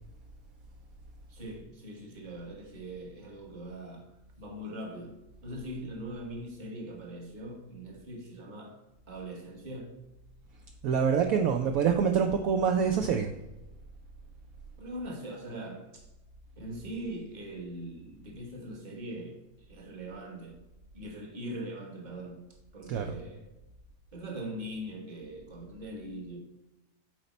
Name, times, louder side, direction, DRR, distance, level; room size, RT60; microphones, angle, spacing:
voice 1, 1.3-4.1 4.4-10.0 14.8-16.0 16.6-20.6 20.9-22.4 22.7-23.5 24.1-26.4, right 1 dB, 30° right, 1.2 m, -41 dB
voice 2, 10.8-13.3 22.9-23.2, right 7 dB, 70° right, 0.9 m, -26 dB
8.0 x 4.4 x 4.1 m
omnidirectional pair, 1.8 m